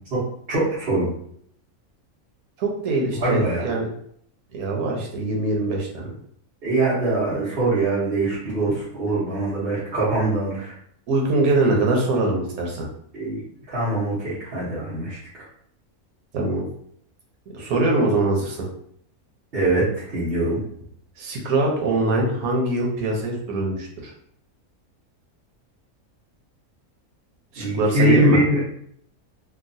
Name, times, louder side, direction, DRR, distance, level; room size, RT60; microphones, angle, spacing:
voice 1, 0.5-1.1 3.2-3.6 6.6-10.7 13.1-13.4 13.7-15.2 19.5-20.6 27.6-28.6, right 2 dB, 45° right, -11 dB, 1.2 m, -23 dB
voice 2, 2.6-3.9 4.5-6.1 11.1-12.9 16.3-16.6 17.5-18.7 21.2-24.1 27.5-28.4, right 2 dB, 80° right, 0 dB, 1.2 m, -23 dB
2.9 x 2.5 x 2.6 m, 0.66 s
omnidirectional pair, 1.5 m